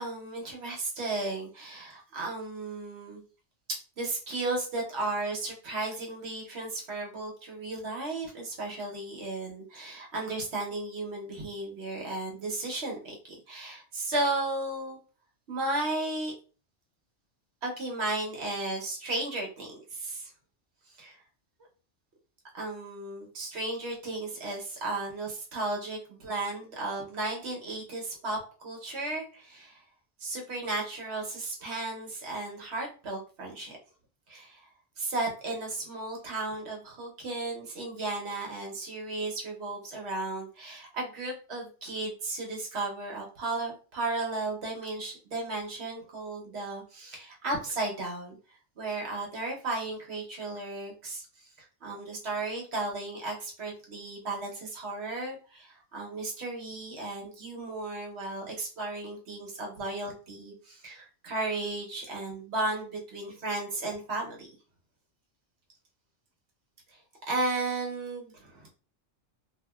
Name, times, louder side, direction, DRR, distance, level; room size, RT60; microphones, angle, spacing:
voice 1, 0.0-3.2 3.7-15.0 15.5-16.3 17.6-20.3 21.0-21.2 22.5-29.8 30.2-33.8 34.3-34.6 35.0-48.4 48.8-51.2 51.8-64.5 67.3-68.7, right 2 dB, 60° right, -1 dB, 1.0 m, -34 dB
2.9 x 2.4 x 2.2 m, 0.36 s
omnidirectional pair, 1.3 m